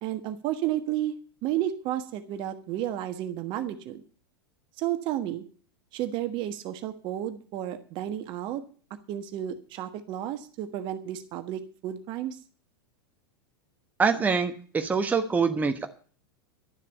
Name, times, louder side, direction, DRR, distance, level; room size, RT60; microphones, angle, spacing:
voice 1, 0.0-1.2 1.4-4.0 4.8-5.4 5.9-8.6 9.1-12.4, right 12 dB, 40° right, 9 dB, 1.4 m, -32 dB
voice 2, 14.0-15.9, right 5 dB, 15° right, 6 dB, 1.2 m, -25 dB
12.0 x 7.3 x 8.5 m, 0.42 s
figure-of-eight pair, 90°, 13 cm